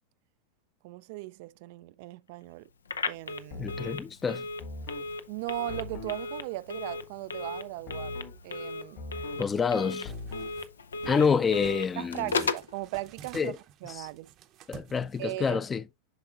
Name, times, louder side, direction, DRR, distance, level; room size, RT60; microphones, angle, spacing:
voice 1, 0.8-2.7 3.1-3.8 5.3-8.2 8.4-9.0 12.0-13.5 13.8-14.3 15.2-15.6, right 19 dB, 60° right, 0.3 m, -38 dB
Telephone, 2.8-12.7, left 4 dB, 90° left, 0.5 m, -36 dB
sound 1, 3.5-4.0 4.6-5.1 5.7-6.2 7.9-8.4 9.0-9.5 10.0-10.6, left 3 dB, 60° left, 2.9 m, -41 dB
voice 2, 3.6-4.5 9.4-10.1 11.1-12.3 13.3-13.6 14.0-14.1 14.7-15.8, left 6 dB, 20° left, 0.5 m, -27 dB
sound 2, 10.1-10.7 11.0-11.9 12.3-15.5, right 10 dB, 45° right, 0.7 m, -50 dB
8.0 x 5.5 x 2.4 m
hypercardioid pair, 100°, 0 cm